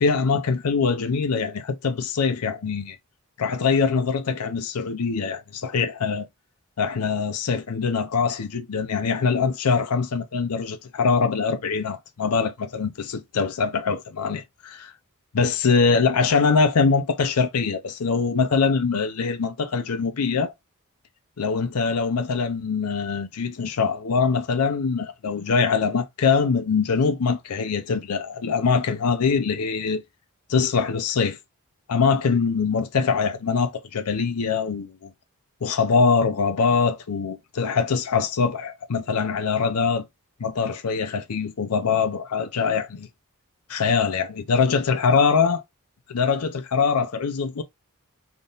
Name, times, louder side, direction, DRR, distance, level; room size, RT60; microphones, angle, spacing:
voice 1, 0.0-3.0 3.4-6.3 6.8-14.9 15.3-20.5 21.4-30.0 30.5-31.4 31.9-35.1 35.6-40.0 40.4-43.1 43.7-45.6 46.1-47.6, left 5 dB, 85° left, 0.6 m, -23 dB
3.9 x 3.6 x 2.3 m
head